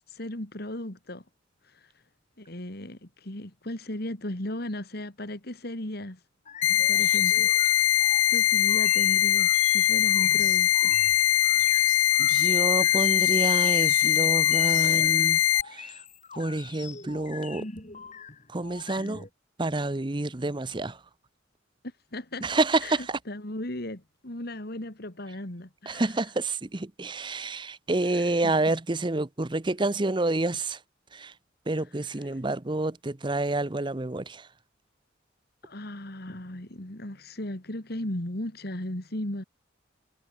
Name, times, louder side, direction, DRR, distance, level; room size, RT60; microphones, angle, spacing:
voice 1, 0.1-1.2 1.6-1.9 2.4-6.2 6.9-7.5 7.9-10.9 11.3-11.9 22.1-22.5 22.8-23.0 23.3-26.0 28.1-28.5 35.6-39.4, left 1 dB, 55° left, 2.7 m, -36 dB
sound 1, 6.4-19.3, left 5 dB, 35° left, 4.1 m, -44 dB
sound 2, 6.6-15.6, left 11 dB, 80° left, 0.5 m, -22 dB
voice 2, 12.2-16.0 16.4-17.7 18.5-19.3 19.6-21.0 22.4-23.2 25.9-30.8 31.1-31.3 31.7-34.5, right 2 dB, 25° right, 0.8 m, -28 dB
head